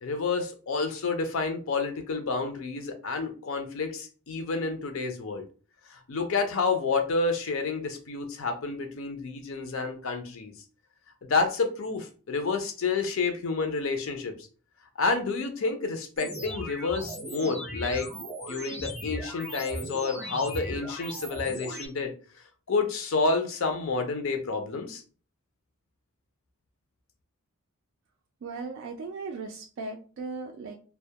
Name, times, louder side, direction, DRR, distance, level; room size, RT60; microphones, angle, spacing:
voice 1, 0.0-5.4 5.9-10.5 11.2-14.3 15.0-18.1 18.5-22.1 22.7-25.0, left 4 dB, 60° left, 6 dB, 0.5 m, -29 dB
sound 1, 16.2-21.9, equal, 5° right, 0.6 m, -37 dB
voice 2, 28.4-30.7, right 4 dB, 55° right, 3 dB, 0.3 m, -37 dB
2.2 x 2.1 x 2.7 m, 0.38 s
head